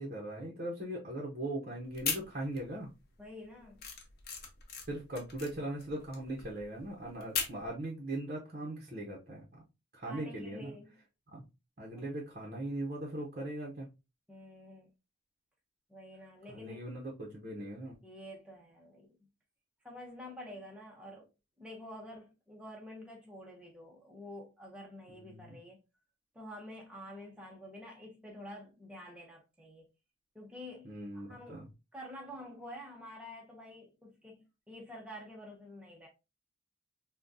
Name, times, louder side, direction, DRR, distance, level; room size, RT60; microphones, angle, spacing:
voice 1, 0.0-2.9 4.9-9.6 9.9-10.8 11.3-11.4 11.8-13.9 16.5-18.0 25.2-25.6 30.8-31.7, right 1 dB, 40° right, 0.7 m, -40 dB
sound 1, 1.9-2.8 3.1-7.7, left 6 dB, 50° left, 0.8 m, -38 dB
voice 2, 3.2-3.8 10.0-10.9 11.9-12.1 14.3-14.9 15.9-16.8 18.0-19.2 19.8-21.3 21.6-25.8 26.3-29.9 30.3-31.7 31.9-36.1, left 1 dB, 5° right, 0.7 m, -48 dB
3.6 x 2.2 x 2.6 m
head